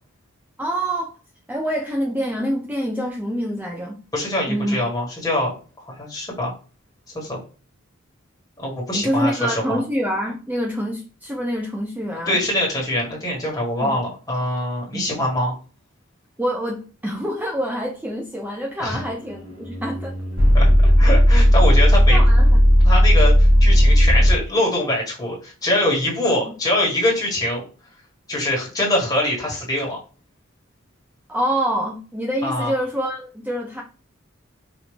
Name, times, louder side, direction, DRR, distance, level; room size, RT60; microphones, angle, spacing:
voice 1, 0.6-1.1 1.5-3.9 4.5-4.8 8.9-12.4 13.8-13.9 14.9-15.2 16.4-20.1 22.1-22.6 31.3-33.8, equal, 10° right, 0 dB, 0.5 m, -26 dB
voice 2, 4.1-6.5 7.1-7.4 8.6-9.8 12.3-15.5 18.8-19.0 20.5-22.2 22.8-27.6 28.3-30.0 32.4-32.7, left 1 dB, 20° left, -3 dB, 1.6 m, -23 dB
sound 1, 18.8-24.3, equal, 85° right, 2.2 m, -14 dB
5.0 x 2.6 x 3.3 m, 0.35 s
head